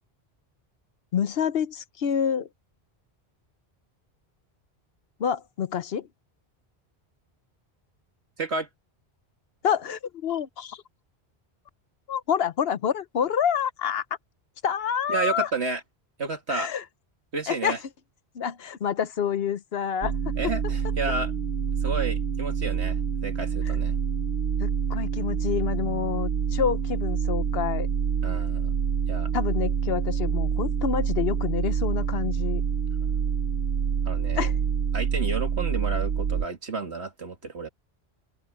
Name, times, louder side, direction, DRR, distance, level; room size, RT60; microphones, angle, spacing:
voice 1, 1.1-2.5 5.2-6.1 9.6-10.8 12.1-14.0 14.6-15.5 16.5-16.8 17.5-17.7 18.3-20.3 24.6-27.9 29.3-32.6 34.4-34.5, left 8 dB, 70° left, 1.0 m, -27 dB
voice 2, 8.4-8.7 15.1-15.8 16.2-16.7 17.3-17.8 20.4-21.3 21.8-23.9 28.2-28.7 29.1-29.3 33.0-33.1 34.1-34.5 34.9-37.7, right 3 dB, 85° right, 2.6 m, -31 dB
sound 1, 20.0-36.5, right 7 dB, 65° right, 0.9 m, -27 dB
open air
omnidirectional pair, 1.1 m